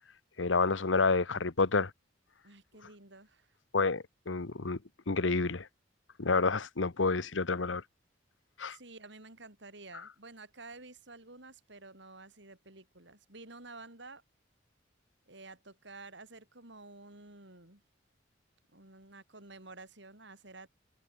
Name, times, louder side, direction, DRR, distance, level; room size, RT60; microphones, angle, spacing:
voice 1, 0.4-1.9 3.7-4.8 5.1-5.7 6.2-7.8 8.6-8.8, left 4 dB, 85° left, 1.1 m, -29 dB
voice 2, 2.4-3.5 8.7-14.2 15.3-17.8 18.7-20.7, right 3 dB, 65° right, 7.1 m, -51 dB
head